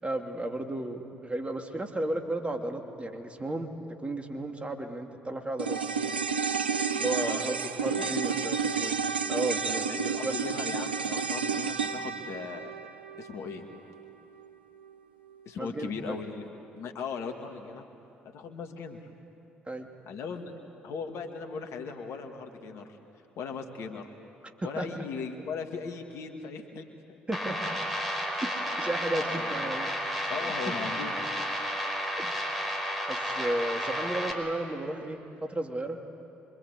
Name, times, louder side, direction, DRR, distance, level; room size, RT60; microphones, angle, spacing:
voice 1, 0.0-3.7 4.0-5.8 7.0-7.5 7.8-9.0 9.3-10.4 15.6-16.2 19.7-19.9 24.6-25.0 27.3-27.8 28.4-30.0 30.4-30.5 32.2-32.4 33.1-36.0, right 1 dB, 20° right, 4 dB, 2.6 m, -34 dB
sound 1, 5.6-14.1 14.4-14.5, right 5 dB, 90° right, 0.7 m, -31 dB
voice 2, 7.2-8.1 9.9-12.7 13.2-13.6 15.5-16.5 16.7-17.8 18.3-19.1 20.0-20.5 20.8-23.0 23.4-24.1 24.6-26.9 29.1-29.5 30.3-31.5, left 5 dB, 60° left, 4 dB, 2.1 m, -38 dB
sound 2, 27.3-34.3, equal, ahead, 5.2 m, -32 dB
26.0 x 24.5 x 8.4 m, 2.8 s
figure-of-eight pair, 50°, 5 cm